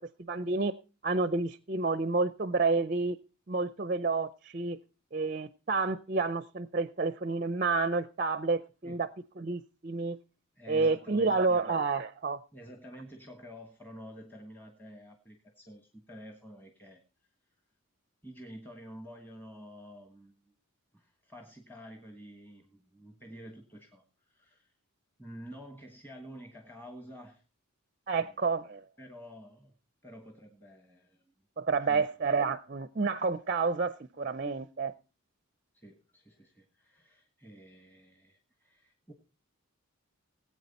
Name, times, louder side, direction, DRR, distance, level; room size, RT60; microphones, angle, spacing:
voice 1, 0.3-0.7 1.0-3.2 3.5-4.8 5.1-9.1 9.4-10.2 10.7-12.4 28.1-28.8 31.6-34.9, right 4 dB, 35° right, 0.5 m, -29 dB
voice 2, 10.5-11.8 12.5-17.0 18.2-20.5 20.9-24.7 25.2-27.4 28.1-28.6 29.0-29.7 30.0-31.3 31.7-32.1 35.7-39.1, equal, 10° left, 1.4 m, -49 dB
18.5 x 8.4 x 4.1 m
head